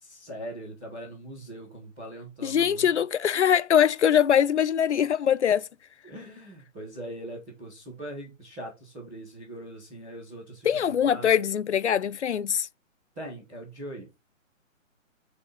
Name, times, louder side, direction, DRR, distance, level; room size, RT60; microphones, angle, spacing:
voice 1, 0.0-2.9 6.0-11.4 13.1-14.1, right 1 dB, 10° right, 1.2 m, -41 dB
voice 2, 2.4-5.7 10.6-12.7, left 9 dB, 60° left, 0.5 m, -22 dB
8.4 x 4.2 x 4.2 m
hypercardioid pair, 175°, 40 cm